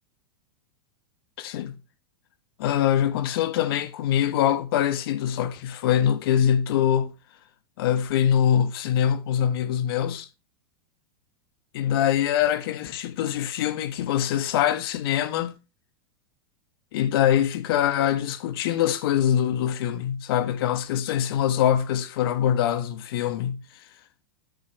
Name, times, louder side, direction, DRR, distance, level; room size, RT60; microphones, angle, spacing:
voice 1, 1.4-1.8 2.6-7.1 7.8-10.3 11.7-15.6 16.9-23.6, left 10 dB, 65° left, 1.7 m, -23 dB
12.5 x 8.3 x 3.3 m
hypercardioid pair, 110°, 13 cm